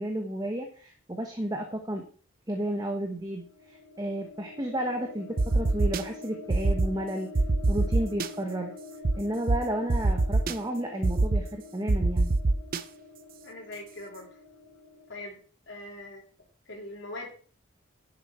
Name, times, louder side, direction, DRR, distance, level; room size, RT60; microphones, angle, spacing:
voice 1, 0.0-2.0 2.5-7.3 7.7-8.7 9.1-12.3, right 1 dB, 20° right, 3 dB, 1.1 m, -32 dB
sound 1, 3.2-15.1, left 3 dB, 85° left, 1.6 m, -46 dB
sound 2, 5.4-6.0 6.5-6.9 7.4-8.3 9.0-9.1 9.5-9.6 9.9-10.5 11.0-11.4 11.9-12.8, right 2 dB, 40° right, 0.5 m, -23 dB
voice 2, 13.4-14.4 15.1-15.4 15.7-16.2 16.7-17.3, left 2 dB, 55° left, 0 dB, 3.3 m, -41 dB
11.0 x 7.5 x 4.3 m, 0.42 s
head